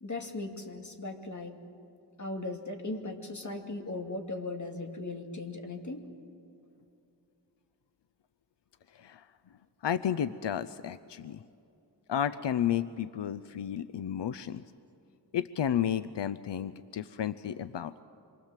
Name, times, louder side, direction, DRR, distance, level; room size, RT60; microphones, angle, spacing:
voice 1, 0.0-1.6 2.2-6.1, left 2 dB, 45° left, 3 dB, 2.4 m, -38 dB
voice 2, 9.8-11.4 12.1-14.6 15.3-18.0, left 9 dB, 90° left, 14 dB, 0.6 m, -32 dB
27.0 x 23.5 x 7.4 m, 2.6 s
wide cardioid pair, 105°, 41 cm